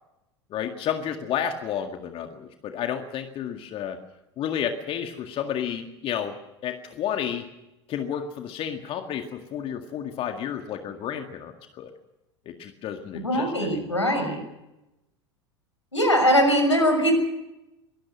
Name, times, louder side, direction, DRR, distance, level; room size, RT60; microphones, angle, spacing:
voice 1, 0.5-4.0 4.4-7.5 7.9-11.9 12.5-14.1, left 9 dB, 40° left, 6 dB, 2.0 m, -31 dB
voice 2, 13.2-14.4 15.9-17.1, equal, 90° left, 5 dB, 6.3 m, -21 dB
24.0 x 19.5 x 6.4 m, 0.94 s
figure-of-eight pair, 80°, 15 cm